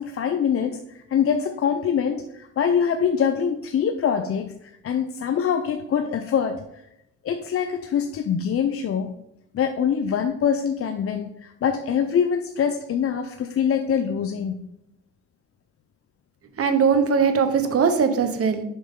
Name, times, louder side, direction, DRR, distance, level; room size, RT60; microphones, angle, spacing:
voice 1, 0.0-6.6 7.2-9.2 9.5-14.7, left 7 dB, 50° left, 6 dB, 0.6 m, -24 dB
voice 2, 16.6-18.6, right 6 dB, 50° right, 8 dB, 1.0 m, -20 dB
7.1 x 5.2 x 3.7 m, 0.81 s
cardioid pair, 90°, 30 cm